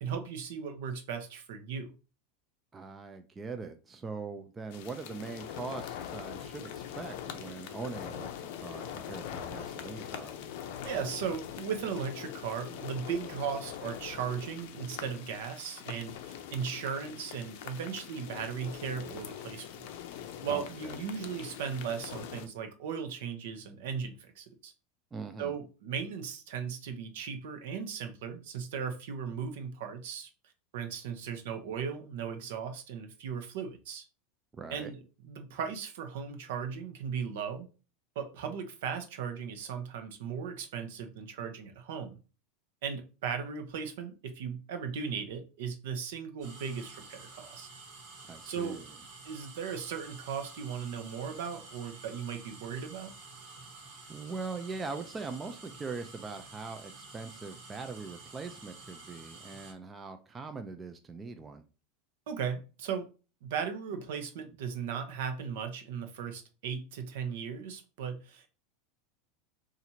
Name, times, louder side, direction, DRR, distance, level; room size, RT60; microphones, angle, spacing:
voice 1, 0.0-1.9 10.8-19.9 20.4-24.7 25.4-30.3 30.7-34.0 34.7-35.0 35.2-37.7 38.2-42.2 42.8-47.7 48.5-48.8 49.2-53.1 62.3-63.1 63.4-68.5, right 7 dB, 75° right, 7 dB, 0.7 m, -37 dB
voice 2, 2.7-10.3 20.5-21.0 25.1-25.5 34.5-34.9 48.2-48.9 54.1-61.6, right 4 dB, 15° right, 7 dB, 0.3 m, -41 dB
sound 1, 4.7-22.5, left 9 dB, 60° left, 0.5 m, -43 dB
sound 2, 46.4-59.7, right 3 dB, 55° right, 1.4 m, -50 dB
2.8 x 2.5 x 4.2 m, 0.33 s
supercardioid pair, 155°, 0 cm